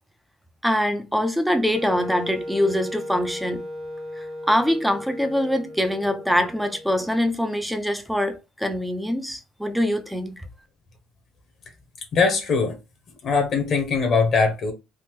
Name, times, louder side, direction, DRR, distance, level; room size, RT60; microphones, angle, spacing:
voice 1, 0.6-3.6 4.2-10.4, equal, ahead, 0.4 m, -24 dB
Wind instrument woodwind instrument, 1.7-7.6, left 1 dB, 45° right, 1.4 m, -36 dB
voice 2, 12.1-12.8 13.2-14.7, left 4 dB, 40° left, 0.7 m, -21 dB
3.4 x 2.0 x 3.0 m
cardioid pair, 150°, 0 cm